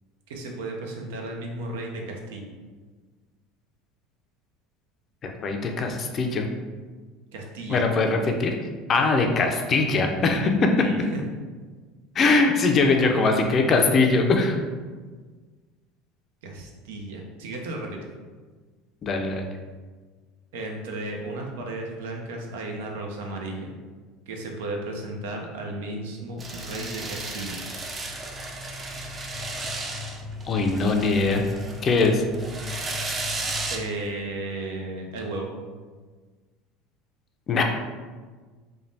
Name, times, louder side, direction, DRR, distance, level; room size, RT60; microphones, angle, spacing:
voice 1, 0.3-2.5 7.3-7.9 10.8-11.2 16.4-18.1 20.5-23.7 24.3-27.7 33.7-35.6, right 2 dB, 85° right, 1 dB, 0.5 m, -34 dB
voice 2, 5.2-6.5 7.7-8.5 8.9-10.9 12.2-14.6 19.0-19.5 30.5-31.4 31.8-32.2 37.5-37.6, left 3 dB, 40° left, 3 dB, 0.4 m, -21 dB
sound 1, 26.4-33.8, right 1 dB, 25° right, 0.4 m, -33 dB
3.2 x 2.2 x 2.6 m, 1.4 s
supercardioid pair, 100°, 0 cm